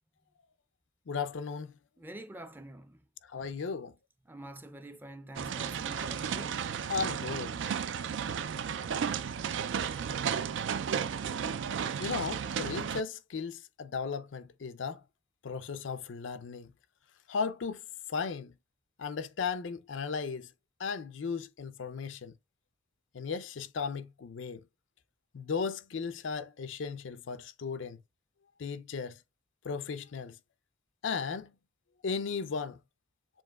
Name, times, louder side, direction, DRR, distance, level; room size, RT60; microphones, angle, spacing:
voice 1, 1.1-1.7 3.3-3.9 6.9-7.6 12.0-15.0 15.4-16.7 17.3-17.8 18.1-18.5 19.0-20.5 20.8-22.3 23.1-24.6 25.3-28.0 28.6-29.2 29.6-30.4 31.0-31.5 32.0-32.8, left 5 dB, 80° left, 0.5 m, -36 dB
voice 2, 2.0-3.0 4.3-6.7, right 1 dB, 10° right, 0.5 m, -46 dB
sound 1, 5.4-13.0, right 7 dB, 70° right, 0.4 m, -33 dB
7.2 x 2.9 x 2.3 m
head